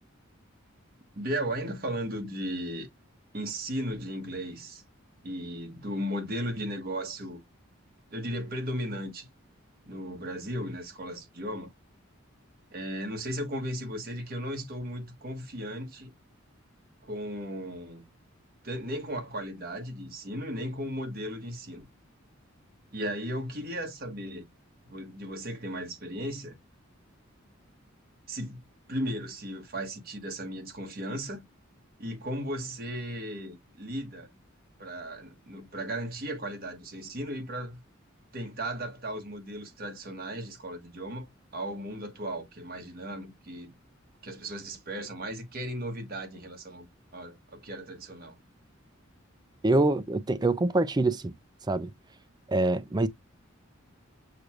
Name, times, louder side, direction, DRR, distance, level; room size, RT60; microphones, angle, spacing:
voice 1, 1.1-2.9 3.3-4.8 5.2-7.4 8.1-9.3 9.8-11.7 12.7-16.1 17.0-18.1 18.6-21.9 22.9-24.5 24.8-26.6 28.3-28.6 28.9-31.4 32.0-34.3 34.8-37.8 38.3-41.3 41.5-43.7 44.2-46.9 47.1-48.4, equal, 50° right, 1.4 m, -36 dB
voice 2, 49.6-51.3 51.7-51.9 52.5-53.1, right 2 dB, 20° right, 0.4 m, -25 dB
6.5 x 2.3 x 3.1 m
head